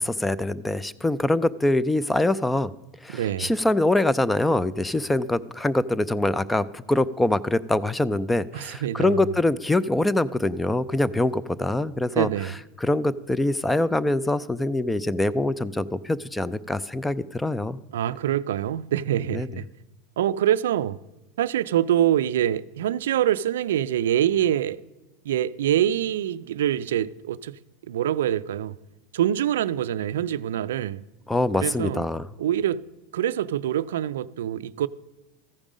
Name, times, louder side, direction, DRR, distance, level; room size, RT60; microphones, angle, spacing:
voice 1, 0.0-2.7 3.0-17.8 19.3-19.5 31.3-32.3, left 2 dB, 5° left, 0.3 m, -24 dB
voice 2, 3.1-3.5 8.5-9.2 12.1-12.5 17.9-19.7 20.2-21.0 21.4-24.8 25.3-27.6 27.9-28.8 29.1-31.0 31.6-32.0 32.4-32.9 33.1-34.9, right 11 dB, 90° right, 0.3 m, -25 dB
14.5 x 5.3 x 5.0 m
supercardioid pair, 125°, 0 cm